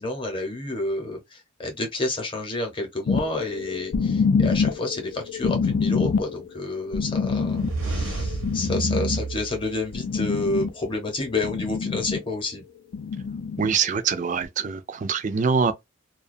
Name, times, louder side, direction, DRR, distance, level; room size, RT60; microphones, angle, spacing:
voice 1, 0.0-12.6, left 2 dB, 25° left, 0.8 m, -29 dB
sound 1, 3.1-10.9 11.2-12.2 12.9-13.7 14.4-14.5, left 5 dB, 75° left, 0.4 m, -26 dB
sound 2, 7.4-10.4, right 2 dB, 80° right, 0.7 m, -31 dB
voice 2, 13.6-15.7, right 5 dB, 35° right, 0.3 m, -24 dB
2.3 x 2.2 x 2.5 m
head